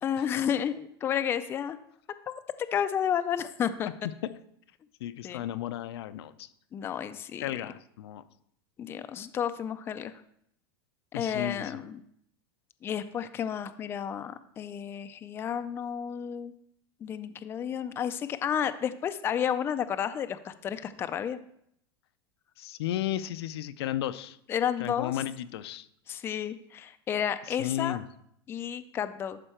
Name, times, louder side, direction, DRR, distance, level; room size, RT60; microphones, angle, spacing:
voice 1, 0.0-1.8 2.3-3.9 5.2-5.4 6.7-7.4 8.8-10.1 11.1-12.0 12.8-16.5 17.0-21.4 24.5-25.1 26.1-28.0 28.5-29.4, left 8 dB, 20° left, 10 dB, 0.3 m, -31 dB
voice 2, 5.0-6.5 7.4-8.2 11.1-11.8 22.6-24.4 24.8-25.9 27.6-28.0, left 12 dB, 85° left, 12 dB, 0.5 m, -34 dB
11.5 x 4.4 x 4.4 m, 0.71 s
supercardioid pair, 150°, 13 cm